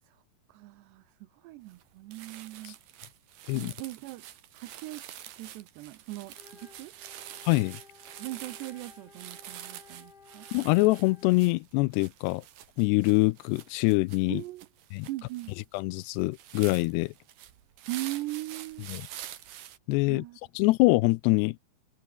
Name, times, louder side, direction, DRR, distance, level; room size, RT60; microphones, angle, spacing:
voice 1, 0.5-2.8 3.5-4.2 4.5-6.9 8.2-10.5 14.3-14.7 15.1-15.6 17.9-18.9 20.1-20.4, right 18 dB, 85° right, 3.1 m, -40 dB
sound 1, 1.7-1.8 2.1-19.8, right 11 dB, 60° right, 3.1 m, -47 dB
Wind instrument woodwind instrument, 6.3-11.5, left 6 dB, 40° left, 1.5 m, -55 dB
voice 2, 7.5-7.8 10.5-12.4 12.8-14.4 14.9-15.1 15.7-17.1 18.9-19.0 19.9-20.2 20.6-21.6, left 23 dB, 85° left, 2.7 m, -24 dB
omnidirectional pair, 4.8 m